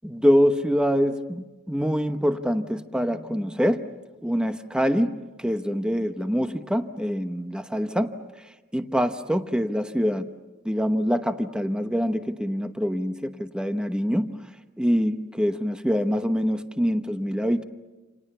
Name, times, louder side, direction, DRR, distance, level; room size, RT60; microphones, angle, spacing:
voice 1, 0.0-3.8 4.2-8.1 8.7-10.3 10.6-14.3 14.8-17.6, equal, 5° right, 8 dB, 0.9 m, -25 dB
28.5 x 28.0 x 6.8 m, 1.2 s
head